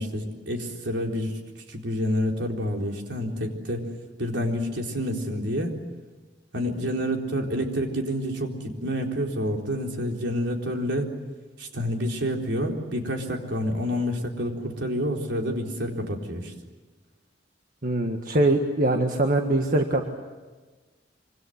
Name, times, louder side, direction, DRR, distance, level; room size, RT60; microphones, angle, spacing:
voice 1, 0.0-1.4 1.7-3.9 4.2-5.8 6.5-11.1 11.6-16.5, equal, 75° right, 1 dB, 4.1 m, -28 dB
voice 2, 17.8-20.1, right 2 dB, 50° right, 3 dB, 1.7 m, -23 dB
26.0 x 25.5 x 8.1 m, 1.3 s
head